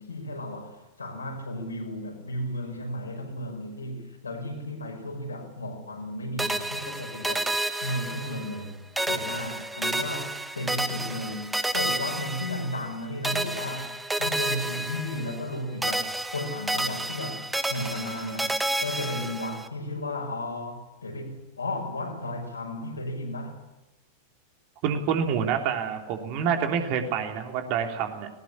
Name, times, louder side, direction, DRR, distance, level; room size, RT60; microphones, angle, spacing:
voice 1, 0.0-7.5 7.8-8.8 9.1-13.9 14.2-17.4 17.7-23.6, left 1 dB, 75° left, 5.9 m, -34 dB
sound 1, 6.4-8.7 9.0-13.0 13.2-15.6 15.8-19.7, right 1 dB, 5° right, 1.4 m, -30 dB
voice 2, 24.8-28.3, right 7 dB, 45° right, 3.3 m, -27 dB
20.0 x 19.0 x 9.8 m
figure-of-eight pair, 90°, 0 cm